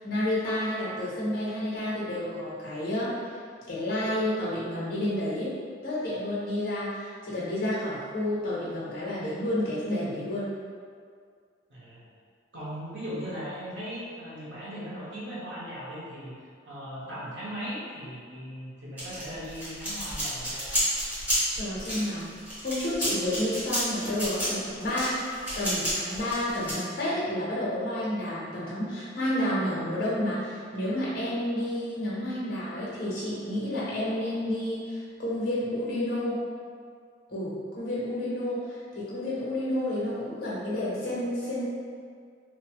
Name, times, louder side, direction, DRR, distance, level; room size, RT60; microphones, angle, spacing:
voice 1, 0.0-3.1 3.7-5.5 5.8-10.5 21.5-22.3 22.6-25.2 25.6-36.4 37.3-38.6 38.9-41.7, left 1 dB, 55° left, -8 dB, 0.7 m, -30 dB
voice 2, 11.7-12.1 12.5-16.4 16.7-20.7, equal, 70° right, -9 dB, 1.1 m, -38 dB
sound 1, 19.0-26.7, equal, 10° right, 1.0 m, -31 dB
2.9 x 2.1 x 2.9 m, 2.1 s
head